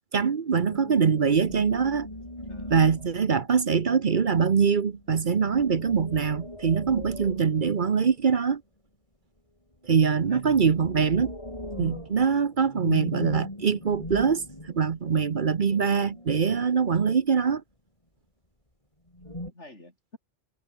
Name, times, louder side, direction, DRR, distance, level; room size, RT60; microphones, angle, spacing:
voice 1, 0.1-2.1 2.7-8.6 9.8-11.3 11.8-17.6, right 6 dB, 50° right, 1.0 m, -23 dB
sound 1, 0.6-3.8 4.5-8.3 9.9-17.0 19.1-19.5, left 1 dB, 30° left, 5.8 m, -40 dB
voice 2, 2.5-2.9 10.2-10.4 10.7-10.8 19.5-20.2, left 2 dB, 80° left, 6.4 m, -51 dB
omnidirectional pair, 1.2 m